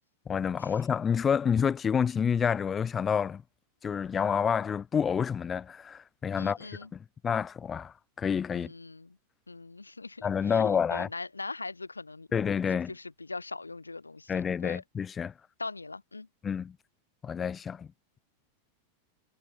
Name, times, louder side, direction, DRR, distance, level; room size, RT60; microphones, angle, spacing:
voice 1, 0.3-3.4 3.8-8.7 10.2-11.1 12.3-12.9 14.3-15.3 16.4-16.8 17.2-17.9, left 7 dB, 20° left, 0.4 m, -29 dB
voice 2, 6.4-6.9 8.5-9.2 9.5-12.5 12.9-14.8 15.6-16.3, left 3 dB, 80° left, 0.9 m, -41 dB
figure-of-eight pair, 90°, 0 cm